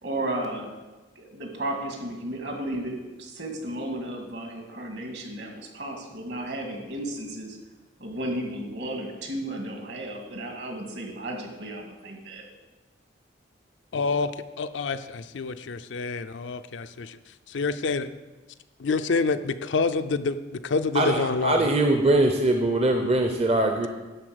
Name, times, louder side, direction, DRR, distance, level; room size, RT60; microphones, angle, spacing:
voice 1, 0.0-0.7 1.2-7.6 8.0-12.4, right 1 dB, 60° right, 2 dB, 1.9 m, -34 dB
voice 2, 13.9-14.3 14.6-17.2 17.5-18.1 18.8-20.4 20.6-21.5, left 4 dB, 70° left, 11 dB, 0.5 m, -27 dB
voice 3, 20.9-23.9, right 2 dB, 30° right, 3 dB, 0.6 m, -22 dB
11.5 x 4.2 x 7.7 m, 1.2 s
head